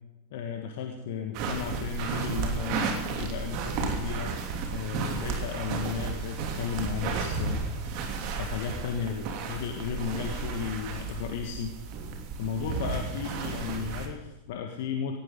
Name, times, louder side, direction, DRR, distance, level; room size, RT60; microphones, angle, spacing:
voice 1, 0.3-4.4 4.7-11.7 12.4-15.2, left 7 dB, 50° left, 4 dB, 1.7 m, -34 dB
sound 1, 1.3-14.1, right 5 dB, 45° right, 2.9 m, -33 dB
18.0 x 17.0 x 3.8 m, 1.1 s
figure-of-eight pair, 90°, 0 cm